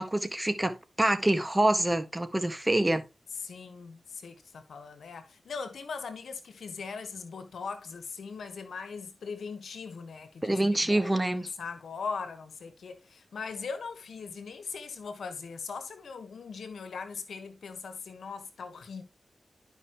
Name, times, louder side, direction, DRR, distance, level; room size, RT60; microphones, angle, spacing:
voice 1, 0.0-3.1 10.4-11.5, right 1 dB, 20° right, 1.6 m, -26 dB
voice 2, 3.4-19.0, left 5 dB, 90° left, 1.2 m, -40 dB
12.0 x 5.4 x 3.0 m
cardioid pair, 40°, 0 cm